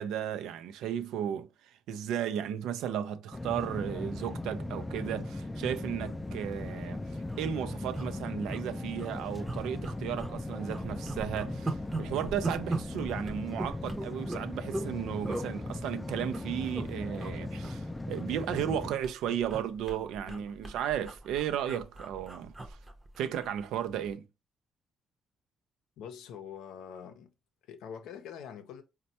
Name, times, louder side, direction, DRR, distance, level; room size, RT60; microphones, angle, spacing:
voice 1, 0.0-7.0 7.4-22.8 23.2-24.2, right 9 dB, 90° right, 0.4 m, -34 dB
sound 1, 3.3-18.9, left 2 dB, 15° left, 0.3 m, -38 dB
sound 2, 6.5-6.6 6.9-7.0 7.2-7.4 7.9-8.6 8.9-9.1 9.4-10.4 10.7-14.9 15.2-15.5 16.1-16.8 17.1-17.3 17.6-18.7 19.0-23.6 23.9-24.1, right 2 dB, 20° right, 0.6 m, -39 dB
voice 2, 20.2-20.7 26.0-27.3 27.6-28.8, left 8 dB, 90° left, 0.5 m, -45 dB
4.2 x 2.2 x 2.7 m
cardioid pair, 90°, 0 cm